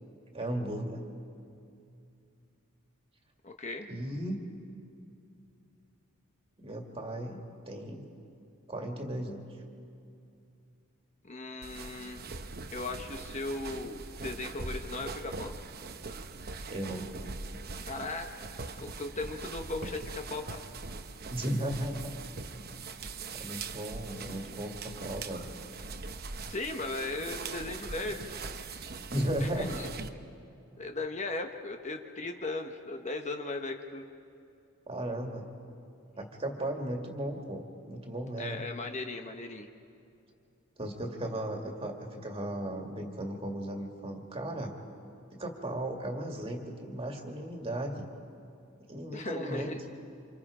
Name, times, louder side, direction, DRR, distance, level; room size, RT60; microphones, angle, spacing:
voice 1, 0.3-1.0 3.9-4.4 6.6-7.4 7.7-8.1 8.7-9.5 16.7-17.1 21.3-22.1 23.3-25.5 29.1-29.8 34.9-35.5 36.2-38.7 40.8-44.7 45.3-48.1 48.9-49.7, right 1 dB, 25° right, 2 dB, 2.2 m, -36 dB
voice 2, 3.4-3.9 11.2-12.2 12.7-15.5 17.9-18.3 18.8-20.7 26.5-28.2 29.4-29.9 30.8-34.0 38.4-39.7 49.1-49.8, left 2 dB, 30° left, 4 dB, 1.0 m, -37 dB
sound 1, 11.6-30.1, right 4 dB, 45° right, 0.9 m, -42 dB
28.5 x 27.0 x 5.0 m, 2.6 s
head